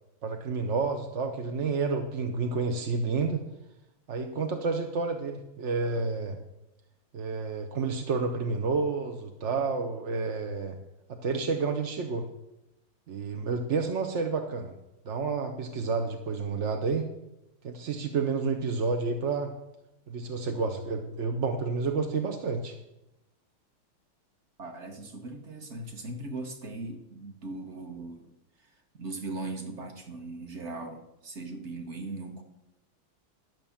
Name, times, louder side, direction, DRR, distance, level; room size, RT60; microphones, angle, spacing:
voice 1, 0.2-3.4 4.1-6.4 7.1-10.8 11.1-12.3 13.1-14.7 15.0-17.1 17.6-19.5 20.1-22.7, right 4 dB, 55° right, 5 dB, 0.8 m, -30 dB
voice 2, 24.6-28.3 28.6-32.4, right 2 dB, 35° right, 5 dB, 1.5 m, -39 dB
12.5 x 6.0 x 7.2 m, 0.92 s
omnidirectional pair, 2.3 m